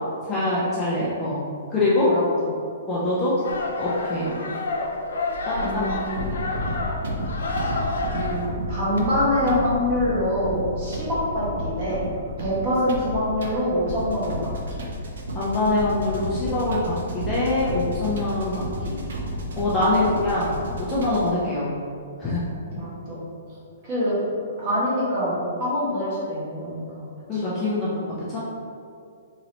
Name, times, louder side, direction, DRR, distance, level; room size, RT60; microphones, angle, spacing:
voice 1, 0.3-1.4 1.7-2.1 2.9-3.3 3.8-4.3 5.4-6.0 15.3-19.0 19.6-20.6 20.9-21.7 22.2-22.4 27.3-27.9 28.3-28.4, left 2 dB, 10° left, -9 dB, 0.4 m, -24 dB
voice 2, 2.0-2.5 4.1-4.5 5.6-6.4 8.1-12.0 12.4-14.5 22.7-23.2 23.8-24.2 24.6-27.1 27.3-27.4, equal, 25° right, -9 dB, 1.2 m, -25 dB
sound 1, 3.4-8.5, left 2 dB, 90° left, 0.6 m, -29 dB
sound 2, 6.1-21.4, equal, 70° right, 0.7 m, -32 dB
3.1 x 2.9 x 4.0 m, 2.4 s
hypercardioid pair, 180°, 0 cm